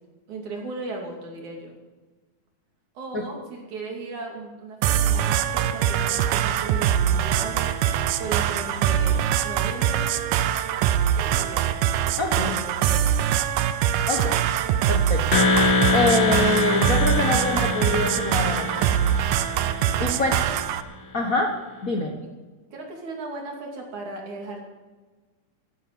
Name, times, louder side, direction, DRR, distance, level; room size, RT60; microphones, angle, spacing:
voice 1, 0.3-1.7 3.0-7.7 8.2-9.2 9.4-10.1 11.2-13.2 20.0-20.6 22.7-24.6, right 3 dB, 65° right, 0 dB, 4.2 m, -36 dB
sound 1, 4.8-20.8, right 10 dB, 90° right, 2.3 m, -23 dB
voice 2, 12.2-12.6 14.1-14.4 14.9-19.0 20.0-20.4 21.1-21.6 21.8-22.1, left 2 dB, 60° left, 2 dB, 0.9 m, -25 dB
sound 2, 15.3-20.2, left 3 dB, 40° left, 1.9 m, -24 dB
13.5 x 13.0 x 6.9 m, 1.3 s
omnidirectional pair, 3.8 m